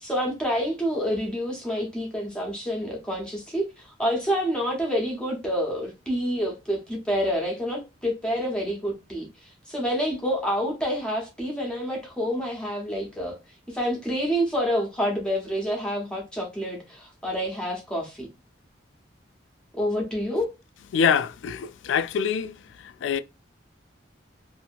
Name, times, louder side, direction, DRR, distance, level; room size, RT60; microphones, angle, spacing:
voice 1, 0.0-13.3 13.7-18.3 19.7-20.5, equal, 5° left, 0.9 m, -28 dB
voice 2, 20.9-22.5 23.0-23.2, left 7 dB, 75° left, 0.3 m, -24 dB
2.8 x 2.6 x 2.4 m
head